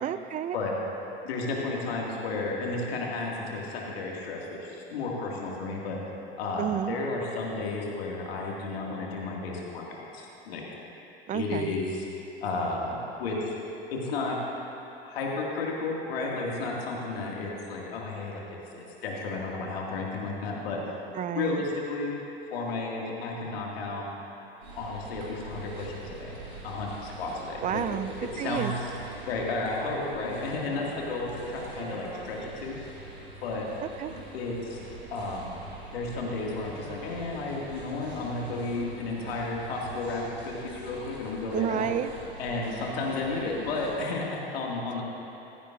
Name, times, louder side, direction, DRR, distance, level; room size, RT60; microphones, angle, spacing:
voice 1, 0.0-0.6 6.6-7.0 11.3-11.8 21.1-21.6 27.6-28.1 28.4-28.7 34.0-34.1 41.5-42.1, right 10 dB, 25° right, 12 dB, 0.4 m, -30 dB
voice 2, 1.2-6.0 6.4-10.7 11.3-12.0 12.4-13.6 13.9-14.4 15.0-21.0 21.3-22.1 22.5-24.1 24.8-26.4 26.6-27.8 28.3-28.7 29.3-32.8 33.4-33.7 34.3-34.8 35.1-35.7 35.9-41.9 42.4-45.0, left 3 dB, 70° left, -2 dB, 2.4 m, -32 dB
sound 1, 24.6-44.0, right 2 dB, 85° right, 2.6 m, -44 dB
15.0 x 15.0 x 2.7 m, 2.9 s
figure-of-eight pair, 80°, 31 cm